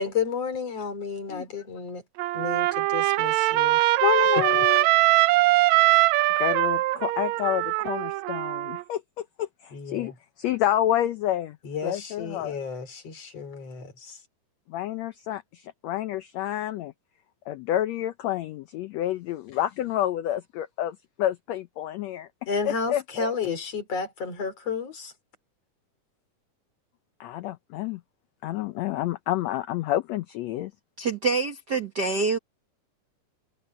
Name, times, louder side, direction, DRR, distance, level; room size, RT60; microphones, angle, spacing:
voice 1, 0.0-2.0 2.3-3.8 4.4-4.6 9.7-10.1 11.6-14.2 22.5-25.1, left 5 dB, 50° left, 5.0 m, -32 dB
Trumpet, 2.2-8.8, right 18 dB, 85° right, 1.6 m, -22 dB
voice 2, 4.0-4.8 6.4-10.1 10.4-11.6 11.8-12.5 14.7-16.9 17.5-22.3 22.6-23.3 27.2-28.0 28.4-30.7, left 12 dB, 80° left, 1.6 m, -29 dB
voice 3, 31.0-32.4, right 4 dB, 40° right, 1.7 m, -26 dB
omnidirectional pair, 3.8 m